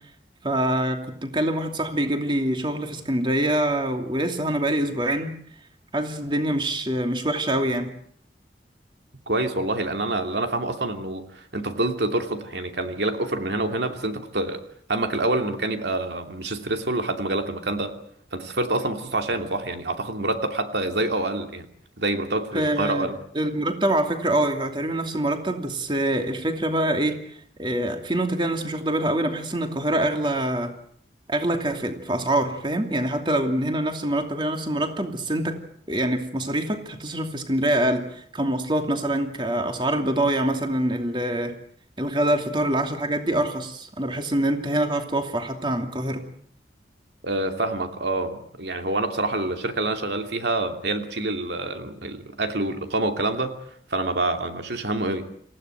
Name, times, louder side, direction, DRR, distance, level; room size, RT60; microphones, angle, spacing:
voice 1, 0.4-5.3 5.9-7.9 22.5-23.1 23.3-30.7 31.3-35.6 35.9-41.5 42.0-46.2, right 1 dB, 25° right, 5 dB, 2.7 m, -25 dB
voice 2, 9.3-14.6 14.9-18.0 18.3-21.7 22.0-23.1 47.2-53.6 53.9-55.3, right 2 dB, 75° right, 5 dB, 2.7 m, -27 dB
28.0 x 16.0 x 9.2 m, 0.64 s
head